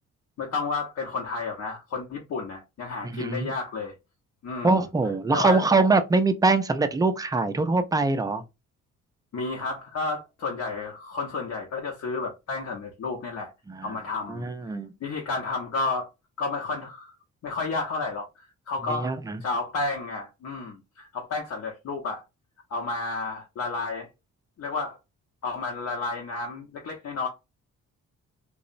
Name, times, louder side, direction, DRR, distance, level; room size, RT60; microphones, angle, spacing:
voice 1, 0.4-3.9 4.4-4.8 5.3-5.6 9.3-13.5 13.8-16.1 16.4-17.1 17.4-19.1 19.4-22.2 22.7-24.1 24.6-25.0 25.4-27.3, left 3 dB, 60° left, 0.7 m, -31 dB
voice 2, 3.0-3.5 4.6-8.4 13.7-14.0 14.3-14.9 18.9-19.4, right 3 dB, 15° right, 0.3 m, -23 dB
2.8 x 2.0 x 2.5 m
cardioid pair, 90°, 30 cm